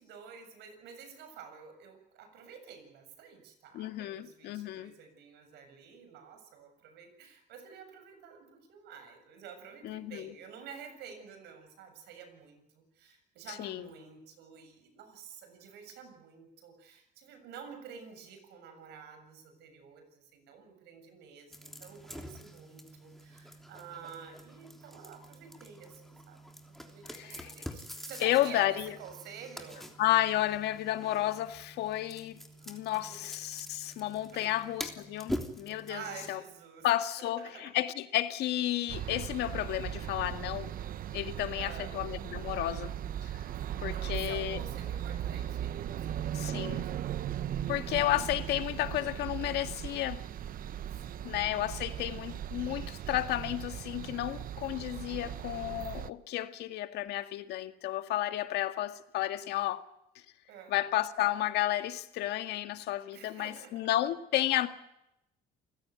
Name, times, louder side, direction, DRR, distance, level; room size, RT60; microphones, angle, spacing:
voice 1, 0.0-26.4 26.8-29.9 32.6-33.3 34.3-34.7 35.9-37.7 41.6-42.0 43.5-47.4 50.9-51.4 60.5-60.8 63.1-63.9, right 7 dB, 85° right, 7.2 m, -50 dB
voice 2, 3.7-4.9 9.8-10.3 13.6-13.8 27.1-27.5 28.2-28.9 30.0-32.4 32.7-36.0 36.3-36.4 36.8-40.7 41.1-42.9 43.2-43.3 43.8-44.6 46.3-46.8 47.7-50.2 51.2-59.8 60.7-64.7, left 14 dB, 80° left, 1.9 m, -32 dB
sound 1, 21.5-36.3, equal, ahead, 3.3 m, -45 dB
sound 2, 38.9-56.1, right 10 dB, 55° right, 1.0 m, -38 dB
28.5 x 16.5 x 9.5 m
cardioid pair, 110°, 17 cm